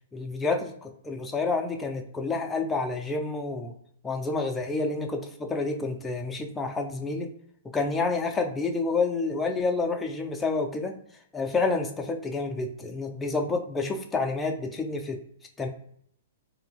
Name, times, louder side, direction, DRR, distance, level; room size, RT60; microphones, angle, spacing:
voice 1, 0.1-3.7 4.0-7.3 7.6-11.0 11.3-15.2 15.6-15.7, left 3 dB, 10° left, 3 dB, 0.3 m, -29 dB
2.8 x 2.0 x 2.7 m, 0.65 s
hypercardioid pair, 140°, 0 cm